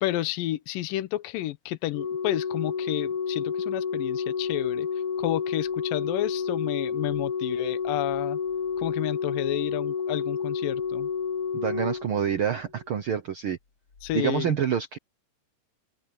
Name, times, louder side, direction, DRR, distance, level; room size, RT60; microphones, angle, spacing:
voice 1, 0.0-4.9 5.2-8.4 8.8-11.1 14.0-14.6, left 15 dB, 80° left, 2.5 m, -31 dB
Organ, 1.9-12.8 14.0-14.1, left 6 dB, 45° left, 2.7 m, -30 dB
voice 2, 11.5-13.6 14.1-15.0, right 9 dB, 85° right, 1.1 m, -27 dB
open air
omnidirectional pair, 4.0 m